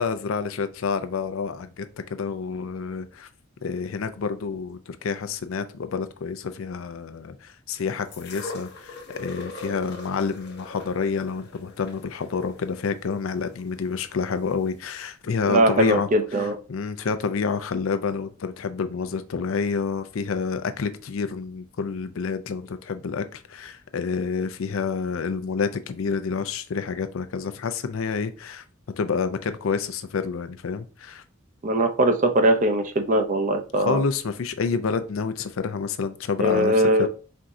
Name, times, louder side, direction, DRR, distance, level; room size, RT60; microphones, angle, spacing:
voice 1, 0.0-3.3 3.6-16.1 16.7-28.6 29.0-31.2 33.8-37.1, left 5 dB, 80° left, 0.5 m, -28 dB
sound 1, 8.1-14.2 15.0-15.1, left 2 dB, 50° left, 0.8 m, -40 dB
voice 2, 15.5-16.6 31.6-34.0 36.4-37.1, right 1 dB, 40° right, 0.5 m, -21 dB
4.5 x 3.7 x 2.6 m
head